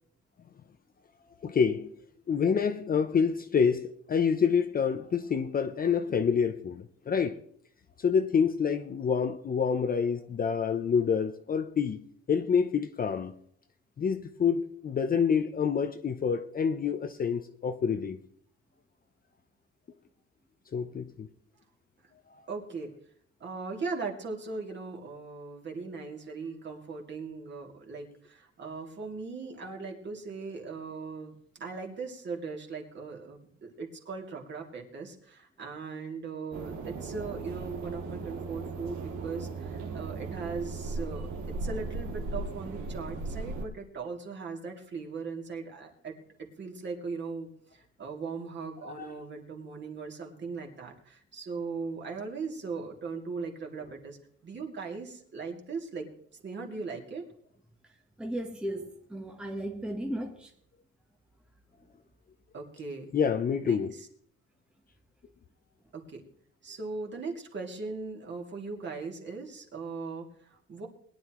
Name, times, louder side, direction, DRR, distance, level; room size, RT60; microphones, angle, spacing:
voice 1, 1.4-1.9 2.3-7.4 8.0-12.0 12.3-13.3 14.0-18.2 20.7-21.3 29.7-29.8 48.8-49.2 63.1-63.9, left 6 dB, 30° left, 0.7 m, -27 dB
voice 2, 22.5-22.9 23.4-54.2 54.4-56.1 56.4-57.2 62.5-63.1 63.6-64.1 65.9-66.2 66.6-70.9, right 4 dB, 40° right, 2.7 m, -39 dB
sound 1, 36.5-43.7, right 3 dB, 85° right, 2.2 m, -37 dB
voice 3, 58.2-60.5, right 1 dB, 5° right, 1.1 m, -35 dB
21.5 x 11.0 x 3.1 m
cardioid pair, 155°, 29 cm